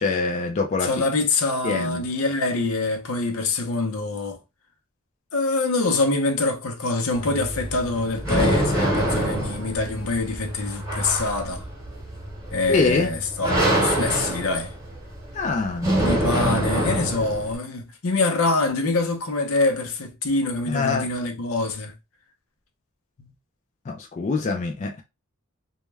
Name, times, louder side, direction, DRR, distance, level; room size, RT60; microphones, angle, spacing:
voice 1, 0.0-0.9 1.6-2.1 12.7-13.1 15.3-15.9 20.7-21.0 23.9-25.0, left 4 dB, 35° left, 0.3 m, -24 dB
voice 2, 0.8-4.4 5.3-11.6 12.5-14.7 15.9-21.9 23.2-23.3, left 3 dB, 80° left, 0.6 m, -25 dB
sound 1, 7.1-17.6, right 1 dB, 15° right, 0.9 m, -25 dB
2.2 x 2.1 x 3.1 m
head